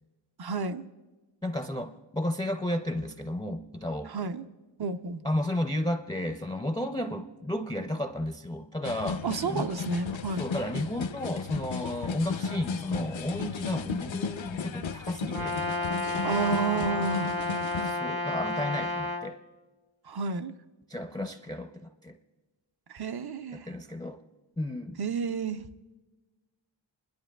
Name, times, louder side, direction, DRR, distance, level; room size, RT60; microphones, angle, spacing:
voice 1, 0.4-0.9 4.1-4.4 4.8-5.2 9.2-10.4 16.2-17.3 20.1-20.5 22.9-23.7 25.0-25.6, right 5 dB, 55° right, 11 dB, 0.6 m, -31 dB
voice 2, 1.4-4.1 5.2-9.7 10.4-15.6 17.8-19.4 20.9-22.2 23.5-24.2 24.6-25.0, left 1 dB, 10° left, 6 dB, 0.4 m, -33 dB
sound 1, 8.8-17.9, left 5 dB, 80° left, 0.5 m, -35 dB
Brass instrument, 15.3-19.3, left 2 dB, 80° right, 1.2 m, -31 dB
29.5 x 11.5 x 2.2 m, 1.2 s
wide cardioid pair, 55°, 46 cm